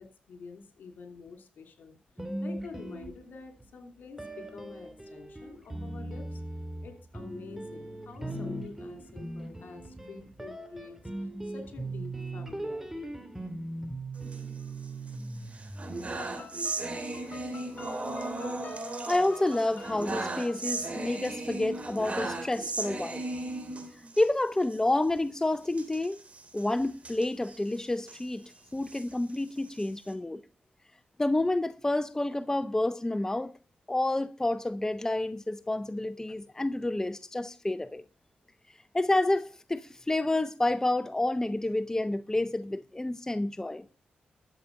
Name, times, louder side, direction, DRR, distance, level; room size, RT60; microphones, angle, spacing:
voice 1, 0.0-2.0 2.4-6.4 6.8-13.1, left 4 dB, 75° left, 2.9 m, -47 dB
sound 1, 2.2-3.7 4.2-16.4, right 1 dB, 10° right, 2.3 m, -39 dB
sound 2, 14.2-15.1 15.5-24.3 24.6-24.8 25.0-25.2 25.7-28.2 28.7-30.1, right 2 dB, 40° right, 3.4 m, -37 dB
sound 3, 16.2-21.2, left 2 dB, 55° left, 2.6 m, -48 dB
voice 2, 19.1-23.2 24.2-26.2 26.5-28.4 28.7-30.4 31.2-33.5 33.9-38.0 38.9-43.8, left 2 dB, 15° left, 0.7 m, -29 dB
12.0 x 7.5 x 5.3 m
cardioid pair, 60°, 3 cm